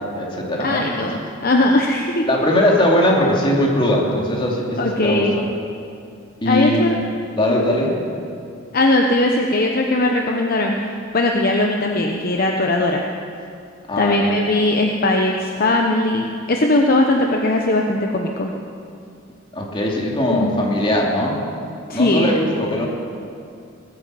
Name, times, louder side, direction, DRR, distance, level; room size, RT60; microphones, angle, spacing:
voice 1, 0.0-1.1 2.3-5.4 6.4-6.8 7.4-7.9 13.9-14.2 19.5-21.4 21.9-22.9, left 1 dB, 25° left, -2 dB, 2.6 m, -20 dB
voice 2, 0.6-2.3 4.8-5.4 6.5-7.0 8.7-13.0 14.0-18.5 20.3-20.6 21.9-22.3, left 2 dB, 50° left, 1 dB, 0.9 m, -19 dB
20.0 x 9.2 x 7.6 m, 2.5 s
head